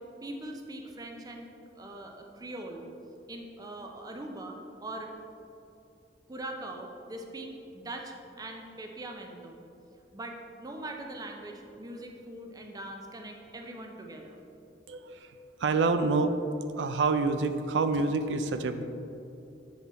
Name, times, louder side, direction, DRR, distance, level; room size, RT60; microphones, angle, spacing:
voice 1, 0.2-1.5 1.8-2.8 3.3-5.1 6.3-9.6 10.1-14.4, right 1 dB, 20° right, 2 dB, 0.5 m, -41 dB
voice 2, 14.9-15.2 15.6-16.4 16.8-18.8, right 3 dB, 80° right, 9 dB, 0.4 m, -27 dB
7.5 x 3.9 x 4.1 m, 2.7 s
head